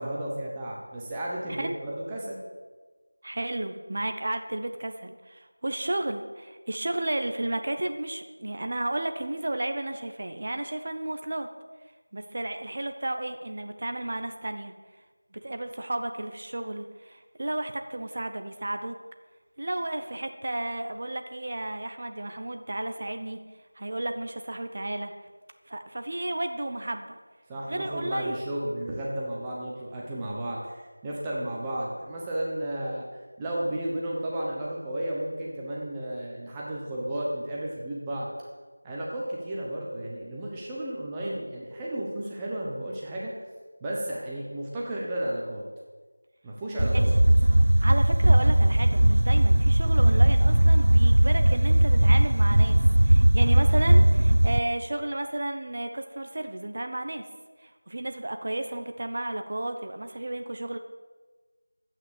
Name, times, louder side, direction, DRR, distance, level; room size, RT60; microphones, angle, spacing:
voice 1, 0.0-2.4 27.5-33.0 33.4-38.3 38.8-43.3 43.8-45.6 46.4-47.1, right 1 dB, 5° right, -5 dB, 1.0 m, -33 dB
voice 2, 3.2-11.5 12.1-14.7 15.3-19.0 19.6-23.4 23.8-25.1 25.7-27.2 27.7-28.4 46.8-47.1 47.8-52.8 53.0-57.3 57.6-60.8, right 1 dB, 35° right, 6 dB, 0.8 m, -33 dB
sound 1, 46.8-54.6, right 1 dB, 60° right, 0.5 m, -19 dB
11.5 x 8.7 x 7.2 m, 1.3 s
figure-of-eight pair, 175°, 0 cm